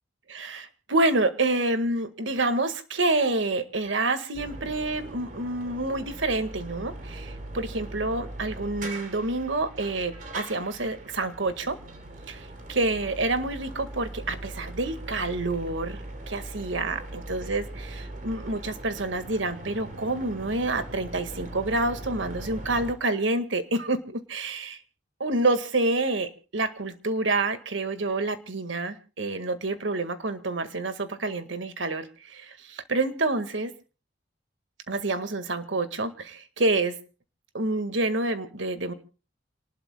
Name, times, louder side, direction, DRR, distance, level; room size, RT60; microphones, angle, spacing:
voice 1, 0.3-11.8 12.3-24.8 25.2-33.7 34.9-37.0 37.5-38.9, right 2 dB, 80° right, 10 dB, 1.8 m, -28 dB
sound 1, 4.3-23.0, right 1 dB, 45° right, 3.2 m, -40 dB
29.0 x 19.5 x 2.3 m, 0.35 s
head